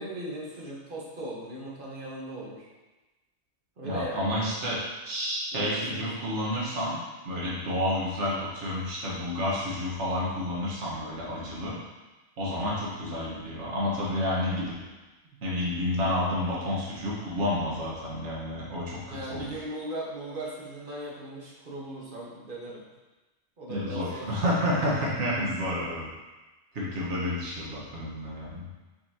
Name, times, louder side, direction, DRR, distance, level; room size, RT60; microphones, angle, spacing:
voice 1, 0.0-2.7 3.8-4.4 5.5-6.1 19.1-22.8 23.6-24.4, right 1 dB, 45° right, -4 dB, 1.4 m, -38 dB
voice 2, 3.8-7.0 7.2-11.7 12.4-14.7 15.4-19.5 23.7-26.1 26.7-28.7, left 1 dB, 70° right, -6 dB, 1.7 m, -30 dB
5.9 x 5.7 x 2.8 m, 1.2 s
omnidirectional pair, 1.3 m